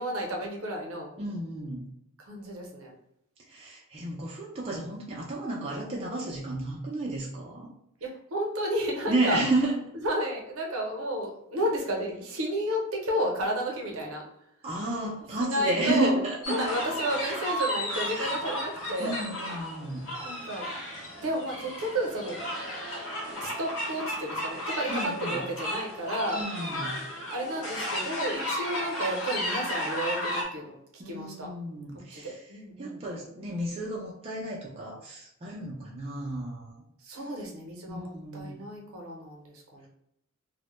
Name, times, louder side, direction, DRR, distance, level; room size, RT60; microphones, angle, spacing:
voice 1, 0.0-1.2 2.2-2.9 8.0-9.4 10.0-14.2 15.4-16.2 16.5-19.2 20.2-20.7 21.2-22.4 23.4-26.4 27.3-31.5 32.1-33.0 37.0-39.9, equal, 70° right, 0 dB, 0.6 m, -32 dB
voice 2, 1.2-1.9 3.5-7.7 9.1-9.8 14.6-16.7 18.1-18.4 19.0-20.1 24.9-25.4 26.3-27.0 31.0-32.4 32.8-36.8 37.9-38.6, right 2 dB, 25° right, -4 dB, 0.4 m, -32 dB
sound 1, 16.4-30.4, equal, 80° left, 0.7 m, -34 dB
2.1 x 2.0 x 2.9 m, 0.78 s
head